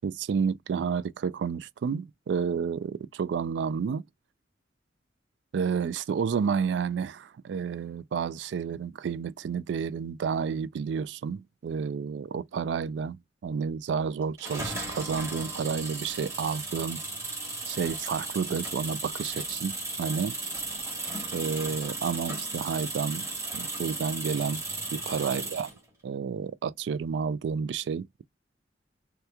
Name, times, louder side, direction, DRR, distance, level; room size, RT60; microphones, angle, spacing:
voice 1, 0.0-4.0 5.5-17.0 17.7-20.4 21.3-24.6 24.9-25.7 26.0-28.2, right 6 dB, 80° right, 0.3 m, -30 dB
sound 1, 14.4-25.8, right 2 dB, 15° right, 1.1 m, -35 dB
2.9 x 2.3 x 3.3 m
head